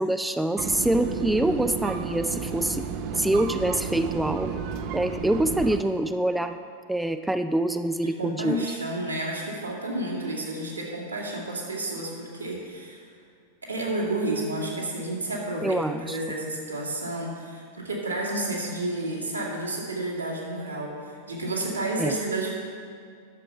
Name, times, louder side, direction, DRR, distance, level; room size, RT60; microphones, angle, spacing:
voice 1, 0.0-2.8 3.2-4.6 4.9-6.6 6.9-8.6 15.6-16.2 22.0-22.1, right 1 dB, 5° right, 9 dB, 0.3 m, -25 dB
sound 1, 0.6-5.8, right 6 dB, 45° right, 0.6 m, -32 dB
voice 2, 8.0-13.0 13.6-22.5, right 1 dB, 80° right, -4 dB, 2.0 m, -31 dB
11.0 x 7.0 x 4.4 m, 2.3 s
figure-of-eight pair, 90°, 0 cm